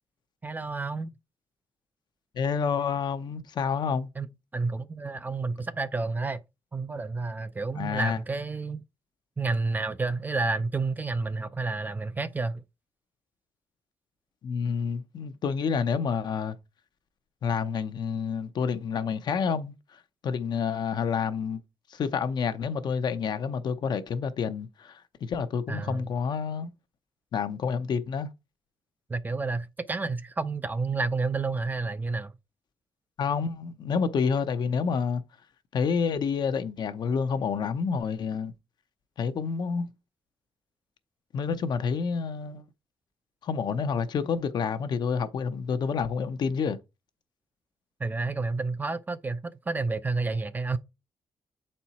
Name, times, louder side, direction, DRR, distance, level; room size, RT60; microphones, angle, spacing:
voice 1, 0.4-1.1 4.2-4.3 4.5-6.4 6.7-8.8 9.4-12.6 25.7-26.1 29.1-32.3 48.0-50.8, right 3 dB, 20° right, 0.4 m, -30 dB
voice 2, 2.3-4.1 7.8-8.2 14.4-16.5 17.4-19.7 20.2-21.6 21.9-26.7 27.3-28.3 33.2-35.2 35.7-38.5 39.2-39.9 41.3-42.6 43.4-46.8, left 6 dB, 50° left, 0.7 m, -28 dB
7.3 x 4.4 x 4.1 m
cardioid pair, 140°, 9 cm